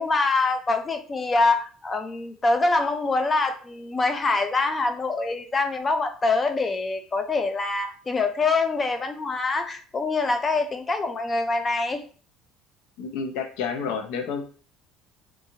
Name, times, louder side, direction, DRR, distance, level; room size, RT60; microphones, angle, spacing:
voice 1, 0.0-12.0, left 3 dB, 15° left, 6 dB, 0.3 m, -24 dB
voice 2, 13.0-14.4, left 6 dB, 75° left, 6 dB, 0.5 m, -30 dB
3.0 x 2.3 x 2.7 m, 0.40 s
cardioid pair, 175°, 0 cm